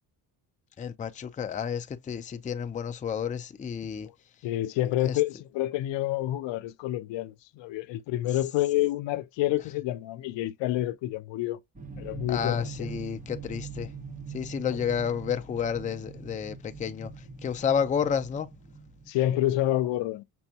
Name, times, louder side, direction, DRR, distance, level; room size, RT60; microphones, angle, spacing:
voice 1, 0.8-4.1 5.0-5.2 12.3-13.9 14.3-17.1 17.4-18.5, left 7 dB, 20° left, 0.4 m, -30 dB
voice 2, 4.4-11.6 12.0-12.7 14.7-14.8 19.1-20.2, left 14 dB, 75° left, 0.6 m, -28 dB
sound 1, 11.8-19.1, right 5 dB, 20° right, 0.8 m, -42 dB
6.1 x 2.2 x 2.7 m
cardioid pair, 130°, 44 cm